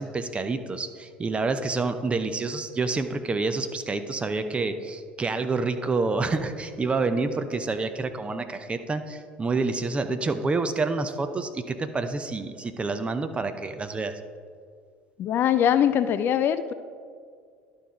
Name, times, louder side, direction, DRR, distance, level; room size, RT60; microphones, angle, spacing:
voice 1, 0.0-14.1, right 3 dB, 20° right, 9 dB, 0.6 m, -28 dB
voice 2, 15.2-16.7, left 9 dB, 40° left, 12 dB, 0.4 m, -22 dB
11.5 x 4.4 x 4.9 m, 2.1 s
figure-of-eight pair, 65°, 5 cm